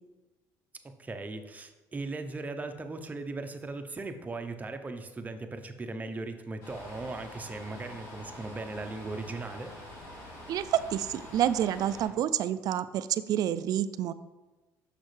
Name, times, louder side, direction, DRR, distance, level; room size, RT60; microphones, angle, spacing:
voice 1, 0.8-9.7, right 3 dB, 20° right, 7 dB, 0.7 m, -38 dB
sound 1, 6.6-12.1, left 1 dB, 85° left, 2.1 m, -46 dB
voice 2, 10.5-14.1, right 11 dB, 60° right, 14 dB, 0.3 m, -28 dB
6.3 x 5.8 x 3.2 m, 1.1 s
supercardioid pair, 90°, 7 cm